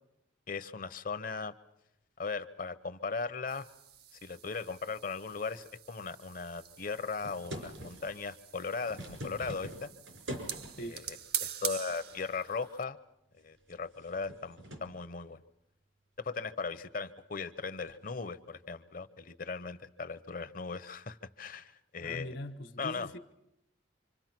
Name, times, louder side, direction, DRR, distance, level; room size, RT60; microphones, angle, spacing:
voice 1, 0.5-1.5 2.2-3.7 4.2-9.9 10.8-13.0 13.4-15.4 16.2-22.3 22.8-23.1, left 4 dB, 45° left, 0.8 m, -38 dB
sound 1, 3.5-12.8, right 9 dB, 55° right, 0.9 m, -44 dB
sound 2, 7.2-8.2 8.6-10.9 11.9-12.4 12.8-12.9 13.5-15.0 17.8-18.1, equal, 80° right, 5.3 m, -44 dB
voice 2, 22.0-23.2, equal, 65° left, 1.4 m, -41 dB
26.0 x 26.0 x 6.1 m
head